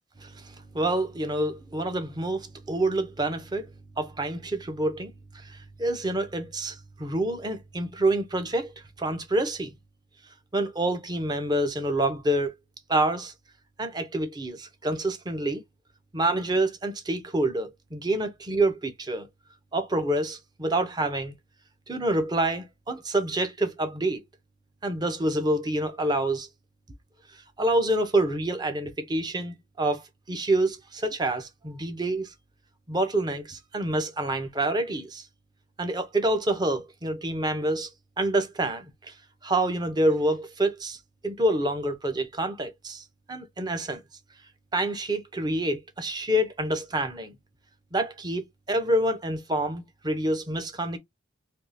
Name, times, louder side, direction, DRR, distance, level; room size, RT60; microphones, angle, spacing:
voice 1, 0.2-3.7 4.0-8.7 9.0-9.7 10.5-12.5 12.9-13.3 13.8-15.6 16.1-19.3 19.7-21.3 21.9-24.2 24.8-26.5 27.6-32.3 32.9-35.3 35.8-37.9 38.2-39.1 39.4-41.0 41.2-44.0 44.7-47.3 47.9-51.0, right 1 dB, 25° right, 0.6 m, -27 dB
3.5 x 2.7 x 2.6 m
head